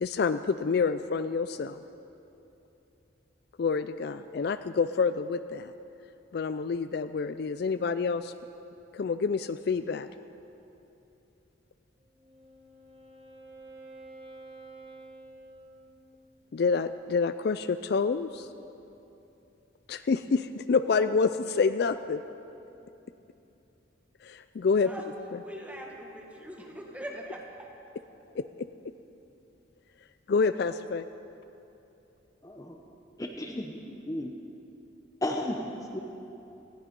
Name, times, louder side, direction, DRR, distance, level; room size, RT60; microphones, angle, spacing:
voice 1, 0.0-1.8 3.6-5.7 6.3-8.3 8.9-10.1 16.5-18.5 19.9-22.2 24.2-24.9 25.3-25.4 28.4-28.7 30.3-31.1, left 5 dB, 55° left, 11 dB, 0.3 m, -28 dB
Wind instrument woodwind instrument, 12.0-16.4, right 2 dB, 30° right, 1.3 m, -50 dB
voice 2, 25.4-27.7, equal, 5° right, 0 dB, 1.6 m, -42 dB
voice 3, 32.4-32.8 33.2-33.8 34.1-34.3 35.2-36.0, left 1 dB, 20° left, 2 dB, 0.8 m, -33 dB
19.5 x 14.0 x 5.3 m, 2.9 s
head